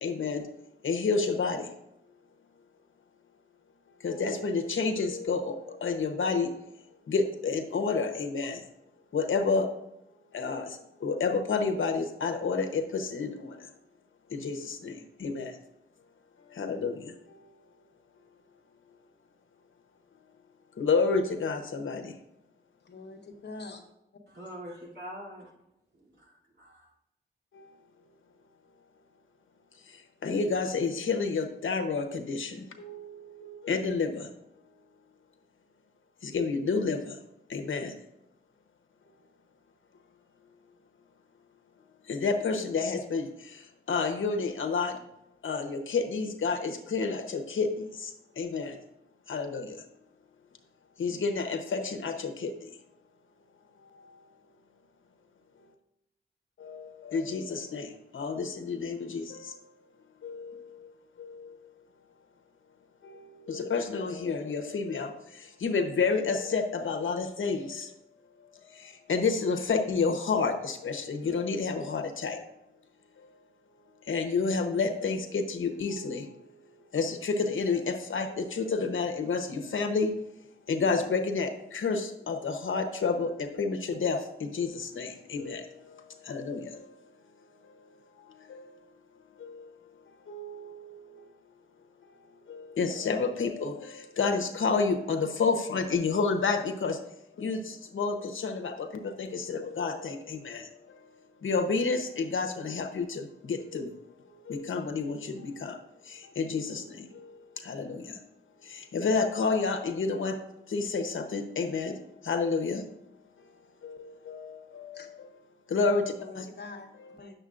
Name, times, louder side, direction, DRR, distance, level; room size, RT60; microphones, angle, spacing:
voice 1, 0.0-0.4 0.8-1.6 4.0-5.5 5.8-6.5 7.1-8.6 9.1-9.7 10.3-10.6 11.0-13.3 14.3-15.5 16.6-17.0 20.8-22.1 30.2-33.1 33.4-34.2 36.2-37.0 37.5-37.9 42.1-43.2 43.9-44.9 45.4-47.9 48.4-48.7 49.3-49.8 51.0-52.5 56.6-57.9 58.1-59.4 60.2-60.6 61.2-61.5 63.0-63.2 63.5-65.1 65.6-67.9 69.1-72.4 74.1-76.2 76.9-80.1 80.7-85.6 86.3-86.7 88.5-88.6 89.4-89.6 90.3-90.7 92.5-97.0 97.4-98.7 99.0-100.6 101.4-103.9 104.5-105.7 106.4-106.8 107.6-108.0 108.9-110.3 110.7-111.9 112.3-112.8 113.8-115.0 115.7-116.0 116.4-116.5, left 4 dB, 75° left, 4 dB, 0.9 m, -29 dB
voice 2, 22.8-23.8 114.9-115.1 116.2-117.3, left 3 dB, 55° left, 3 dB, 1.2 m, -44 dB
voice 3, 24.3-25.5 26.0-26.9, equal, 55° right, -4 dB, 2.9 m, -44 dB
8.9 x 6.9 x 2.5 m, 0.86 s
wide cardioid pair, 80°, 21 cm